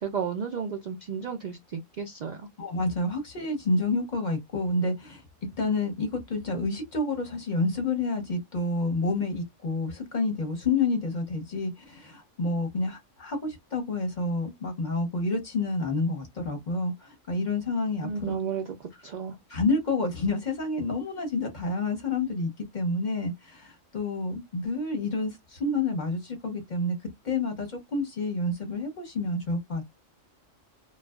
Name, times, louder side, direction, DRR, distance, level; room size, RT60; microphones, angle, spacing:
voice 1, 0.0-2.5 18.0-19.4, right 6 dB, 80° right, 0.4 m, -33 dB
voice 2, 2.6-5.2 5.6-18.4 19.5-27.0 27.2-29.9, left 2 dB, 45° left, 0.8 m, -29 dB
2.6 x 2.3 x 2.3 m
omnidirectional pair, 1.3 m